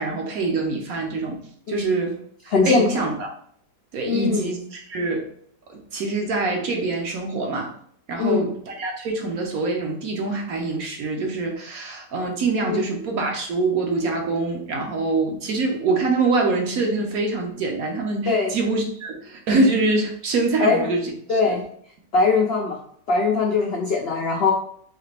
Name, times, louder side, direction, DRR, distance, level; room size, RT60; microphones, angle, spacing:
voice 1, 0.0-1.4 1.7-2.2 2.4-3.3 3.9-5.3 5.7-7.7 8.1-21.4, right 3 dB, 65° right, 2 dB, 1.2 m, -24 dB
voice 2, 2.5-2.9 4.1-4.5 8.2-8.5 12.7-12.8 18.3-18.6 20.6-20.9 21.3-21.6 22.1-22.8 23.1-24.5, left 4 dB, 75° left, 0 dB, 0.5 m, -21 dB
4.0 x 3.3 x 3.3 m, 0.63 s
omnidirectional pair, 1.8 m